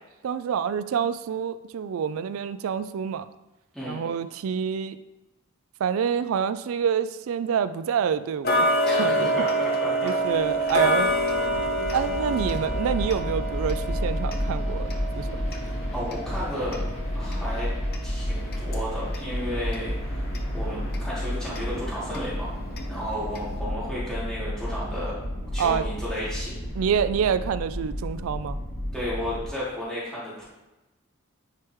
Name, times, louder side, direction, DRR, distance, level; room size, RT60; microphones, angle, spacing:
voice 1, 0.2-3.3 3.9-5.0 5.8-9.3 10.0-11.1 11.9-15.4 25.6-25.8 26.8-28.6, right 7 dB, 70° right, 13 dB, 0.3 m, -27 dB
Tick-tock, 8.4-19.3 19.7-19.8 20.3-20.4 20.9-21.0 21.6-21.7 22.1-22.2 22.8-22.9 23.4-23.5, equal, 45° left, 0.7 m, -27 dB
voice 2, 8.8-10.1 15.9-16.8 17.1-17.7 18.0-22.5 22.9-25.2 25.5-26.5 28.9-30.5, equal, ahead, -10 dB, 1.5 m, -33 dB
sound 1, 10.2-29.5, equal, 80° left, 2.2 m, -31 dB
9.6 x 3.6 x 3.0 m, 1.0 s
head